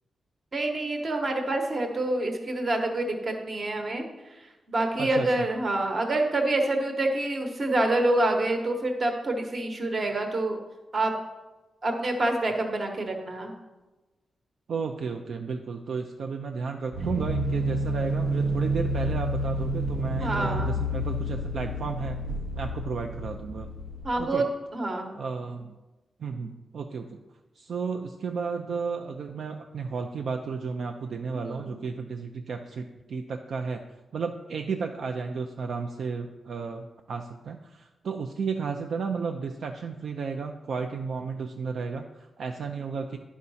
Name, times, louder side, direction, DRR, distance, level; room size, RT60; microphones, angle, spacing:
voice 1, 0.5-4.0 4.4-10.6 10.9-11.1 11.8-13.5 20.2-20.7 24.0-24.5 24.7-25.1 31.3-31.8, right 2 dB, 35° right, 3 dB, 1.0 m, -27 dB
voice 2, 5.0-5.5 14.7-22.2 22.5-23.7 24.2-24.4 25.1-25.8 26.2-27.2 27.6-33.8 34.1-43.2, right 5 dB, 55° right, 4 dB, 0.4 m, -33 dB
sound 1, 16.9-24.1, equal, 85° right, 1.0 m, -29 dB
11.0 x 4.7 x 4.1 m, 1.1 s
wide cardioid pair, 175°, 0 cm